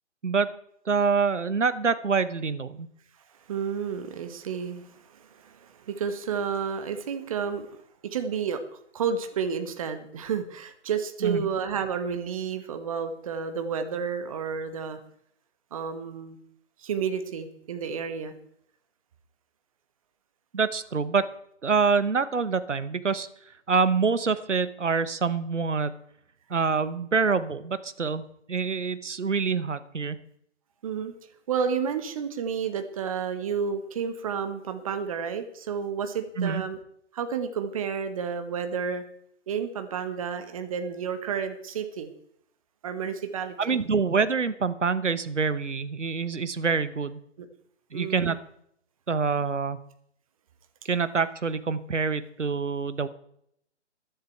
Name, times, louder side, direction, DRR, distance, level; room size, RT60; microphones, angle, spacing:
voice 1, 0.2-0.5 0.9-2.9 11.2-11.5 20.5-21.3 21.6-23.3 23.7-26.0 26.5-30.2 36.4-36.6 43.6-47.2 47.9-48.4 49.1-49.8 50.8-53.1, right 5 dB, 80° right, 14 dB, 1.1 m, -26 dB
voice 2, 3.5-7.7 8.1-8.6 8.9-15.0 15.7-16.4 16.8-18.4 30.8-31.1 31.5-36.8 37.1-39.0 39.5-42.1 42.8-43.7 47.4-47.5 47.9-48.3, right 6 dB, 30° right, 9 dB, 1.2 m, -31 dB
14.5 x 10.5 x 4.5 m, 0.71 s
figure-of-eight pair, 140°, 36 cm